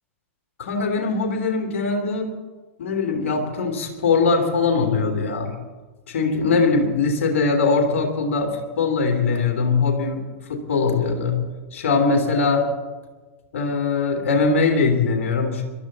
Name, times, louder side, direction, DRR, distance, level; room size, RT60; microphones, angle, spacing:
voice 1, 0.6-2.3 2.8-5.6 6.1-10.2 10.5-11.4 11.7-12.7 13.5-15.6, left 4 dB, 60° left, 3 dB, 3.0 m, -21 dB
22.5 x 13.0 x 4.1 m, 1.3 s
figure-of-eight pair, 95°, 8 cm